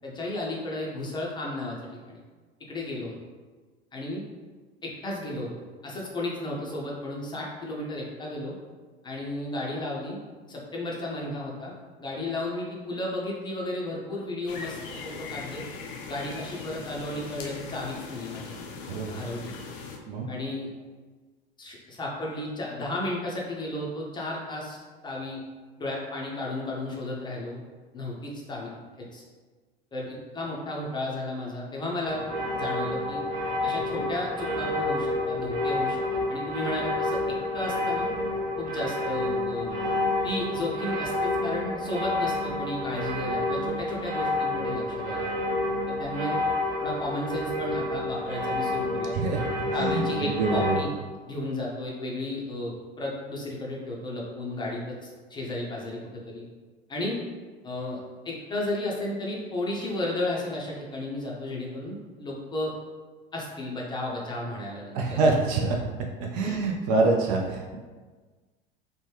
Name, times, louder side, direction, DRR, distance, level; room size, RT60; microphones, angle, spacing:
voice 1, 0.0-1.8 2.1-2.2 2.7-3.2 3.9-4.2 4.8-5.5 5.8-8.6 9.0-10.2 10.5-11.7 12.0-14.8 15.0-15.6 16.1-18.5 19.1-19.5 20.3-20.7 21.6-24.8 25.0-25.4 25.8-27.6 27.9-28.7 29.0-29.2 29.9-32.2 32.5-33.2 33.6-38.1 38.6-39.8 40.2-45.3 45.9-46.4 46.8-49.2 49.7-50.9 51.3-56.0 56.3-56.4 56.9-57.2 57.6-62.7 63.3-65.2 66.4-66.6, left 1 dB, 15° left, -3 dB, 0.6 m, -33 dB
sound 1, 14.5-20.0, left 4 dB, 60° left, 0.5 m, -40 dB
sound 2, 32.0-50.8, left 2 dB, 65° right, 1.2 m, -29 dB
voice 2, 49.8-50.8 64.9-65.8 66.2-67.8, right 3 dB, 40° right, 1 dB, 0.4 m, -25 dB
3.0 x 2.1 x 3.3 m, 1.4 s
figure-of-eight pair, 80°, 30 cm